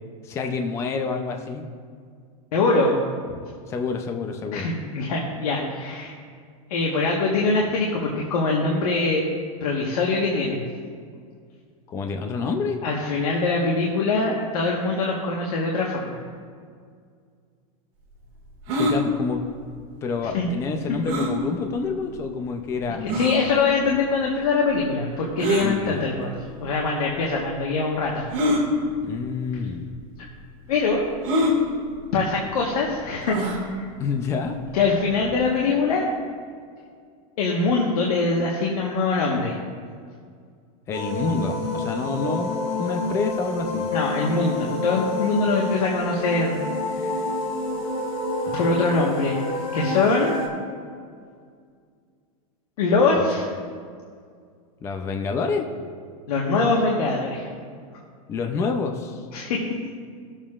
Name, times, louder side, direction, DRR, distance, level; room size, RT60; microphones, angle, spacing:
voice 1, 0.2-1.6 3.7-4.7 11.9-12.8 18.7-19.4 20.0-23.2 25.6-26.1 29.0-29.9 34.0-34.6 40.9-42.5 42.8-43.9 48.4-49.2 54.8-55.7 58.3-59.2, left 4 dB, 15° left, 4 dB, 0.5 m, -28 dB
voice 2, 2.5-3.0 4.5-6.1 6.7-9.2 9.6-10.6 12.8-16.2 20.3-20.5 23.0-26.3 26.6-28.2 30.7-31.1 32.1-33.9 34.7-36.1 37.4-39.6 43.9-46.6 46.9-47.2 48.5-49.4 49.7-50.3 52.8-53.5 56.3-57.5 59.3-59.6, left 3 dB, 80° left, -2 dB, 1.3 m, -23 dB
sound 1, 18.7-19.0 21.1-21.3 22.1-22.2 23.1-23.4 25.4-25.7 26.8-26.9 28.3-28.6 29.5-29.7 30.0-30.1 31.2-31.6 33.3-33.6, equal, 35° right, 2.0 m, -23 dB
sound 2, 40.9-50.5, left 2 dB, 50° left, 2.6 m, -28 dB
20.0 x 7.3 x 2.4 m, 2.1 s
supercardioid pair, 170°, 19 cm